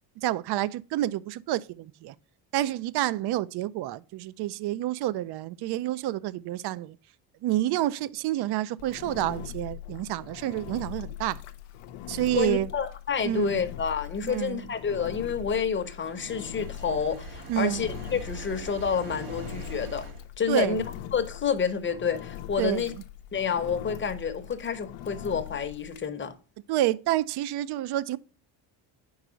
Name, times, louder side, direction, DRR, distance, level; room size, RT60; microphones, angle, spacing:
voice 1, 0.2-2.1 2.5-7.0 7.4-11.4 12.1-12.7 13.2-13.6 14.2-14.6 17.5-17.9 20.5-20.8 22.6-23.0 26.7-28.2, right 14 dB, 55° right, 0.5 m, -29 dB
Engine, 8.8-26.1, left 12 dB, 80° left, 0.7 m, -41 dB
voice 2, 12.3-20.1 20.4-20.8 21.1-22.9 23.3-26.4, left 6 dB, 25° left, 0.8 m, -29 dB
sound 1, 15.6-20.2, right 4 dB, 75° right, 1.2 m, -43 dB
4.8 x 4.5 x 5.0 m
supercardioid pair, 80°, 47 cm